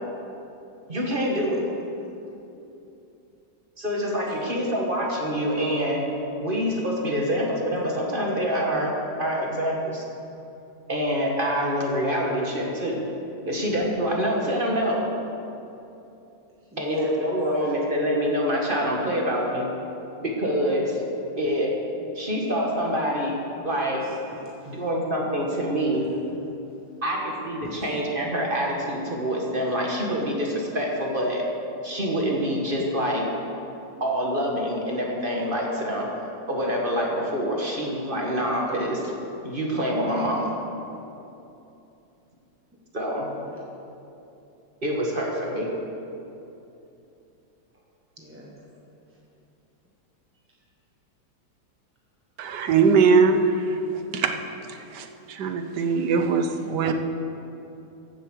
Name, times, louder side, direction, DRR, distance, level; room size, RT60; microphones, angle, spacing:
voice 1, 0.9-1.6 3.8-6.0 6.4-10.0 10.9-13.0 13.5-15.0 16.8-19.7 20.2-21.0 21.4-21.8 22.1-23.4 23.6-24.0 24.7-26.1 27.0-31.4 31.8-33.3 34.0-36.1 36.5-39.1 39.4-40.6 42.9-43.3 44.8-45.7, equal, 30° right, -1 dB, 1.6 m, -26 dB
voice 2, 16.7-17.1 17.6-17.7 21.4-21.5 22.0-22.1 24.0-24.8 27.6-27.8 43.5-43.6 48.2-48.6, right 1 dB, 10° right, -4 dB, 0.9 m, -41 dB
voice 3, 52.4-54.3 54.9-56.9, right 5 dB, 65° right, 6 dB, 1.3 m, -21 dB
15.0 x 7.5 x 6.3 m, 2.9 s
omnidirectional pair, 2.1 m